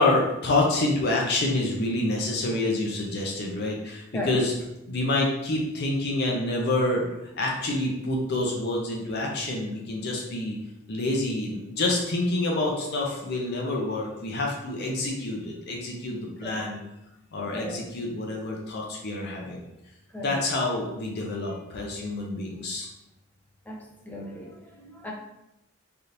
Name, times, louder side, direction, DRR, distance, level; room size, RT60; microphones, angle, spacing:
voice 1, 0.0-4.5 4.9-7.0 7.4-10.6 10.9-16.8 17.3-19.6 20.2-22.9, left 2 dB, 55° left, -1 dB, 0.6 m, -27 dB
voice 2, 17.5-17.9 20.1-20.4 23.7-25.1, left 1 dB, 10° left, -2 dB, 0.6 m, -36 dB
3.4 x 2.8 x 2.5 m, 0.89 s
head